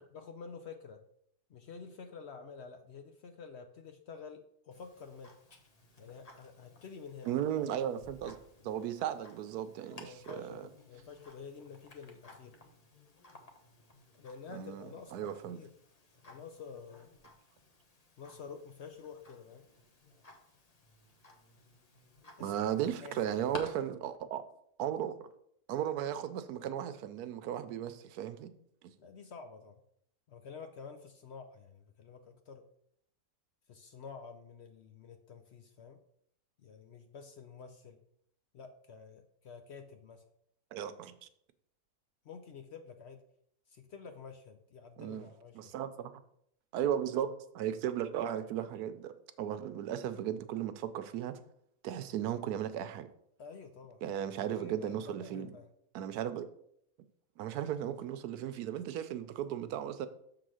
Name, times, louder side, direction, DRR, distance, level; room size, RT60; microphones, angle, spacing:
voice 1, 0.1-1.0 1.5-5.4 6.0-7.3 9.9-12.6 14.1-15.8 16.2-17.1 18.2-19.7 22.4-22.6 23.0-23.2 29.0-29.8 30.3-32.7 33.7-36.0 36.6-38.0 38.5-40.2 42.2-43.2 43.7-45.7 53.4-54.0 54.5-55.7, left 5 dB, 60° left, 0.7 m, -49 dB
Tick-tock, 4.7-23.6, left 2 dB, 30° left, 0.9 m, -55 dB
voice 2, 7.2-8.4 8.6-10.7 14.5-14.8 15.1-15.6 22.4-24.4 24.8-25.1 25.7-28.5 40.7-41.1 45.0-45.3 45.5-46.1 46.7-51.4 51.8-53.1 54.0-55.5 55.9-56.5 57.4-60.1, right 10 dB, 85° right, 1.2 m, -36 dB
6.7 x 3.9 x 6.3 m
omnidirectional pair, 1.6 m